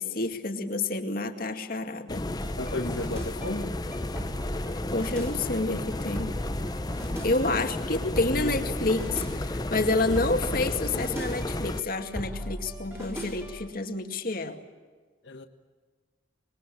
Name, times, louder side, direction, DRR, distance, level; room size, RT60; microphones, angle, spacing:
voice 1, 0.0-2.3 4.9-6.4 7.2-14.6, left 2 dB, 50° left, 6 dB, 2.2 m, -29 dB
sound 1, 2.1-11.8, left 1 dB, 20° left, 0.8 m, -33 dB
sound 2, 2.4-13.7, equal, 15° right, 4.4 m, -39 dB
voice 2, 2.6-3.8 7.5-7.6 8.0-8.5 15.2-15.5, left 2 dB, 70° left, 7 dB, 1.5 m, -34 dB
26.0 x 21.5 x 8.5 m, 1.5 s
head